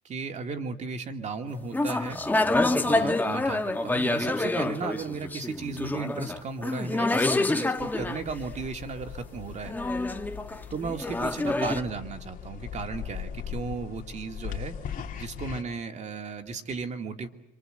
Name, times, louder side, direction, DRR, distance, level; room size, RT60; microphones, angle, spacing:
voice 1, 0.0-2.2 2.8-9.7 10.7-14.7 15.2-17.3, right 4 dB, 45° right, 5 dB, 2.5 m, -35 dB
sound 1, 1.7-8.2 9.7-11.8, left 2 dB, 10° left, 1.6 m, -27 dB
sound 2, 7.8-15.6, left 8 dB, 50° left, 2.6 m, -40 dB
26.0 x 26.0 x 8.0 m, 0.79 s
cardioid pair, 110°, 17 cm